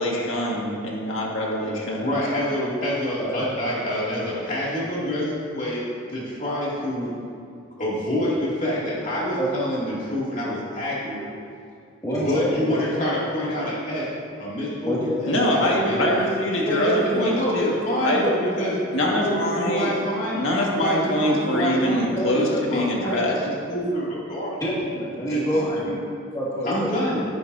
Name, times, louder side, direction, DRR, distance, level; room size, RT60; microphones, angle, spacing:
voice 1, 0.0-2.1 15.3-18.3 18.9-19.9 20.3-23.4, left 1 dB, 80° left, -3 dB, 1.8 m, -24 dB
voice 2, 2.0-5.8 6.1-7.1 7.8-11.2 12.1-14.1 14.4-16.2 16.7-18.7 19.1-20.4 20.7-22.1 22.3-24.6 25.3-25.8 26.7-27.2, equal, 40° left, -7 dB, 2.5 m, -27 dB
voice 3, 12.0-13.0 14.9-15.0 15.3-15.4 22.2-22.3 24.6-26.0 26.3-26.9, right 1 dB, 15° left, -8 dB, 2.1 m, -26 dB
11.0 x 10.5 x 2.7 m, 2.4 s
head